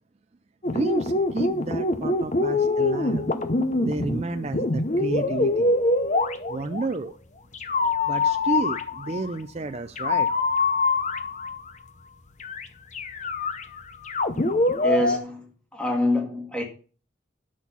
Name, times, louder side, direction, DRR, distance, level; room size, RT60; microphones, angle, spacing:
sound 1, 0.6-6.9 7.5-9.3 10.0-11.7 12.4-12.7 12.9-15.2, left 3 dB, 35° left, 0.8 m, -24 dB
voice 1, 0.7-3.3 3.8-5.8 6.5-7.2 8.1-10.3, right 3 dB, 35° right, 0.4 m, -31 dB
voice 2, 14.8-16.6, left 1 dB, 5° left, 1.9 m, -26 dB
9.3 x 6.2 x 5.7 m
head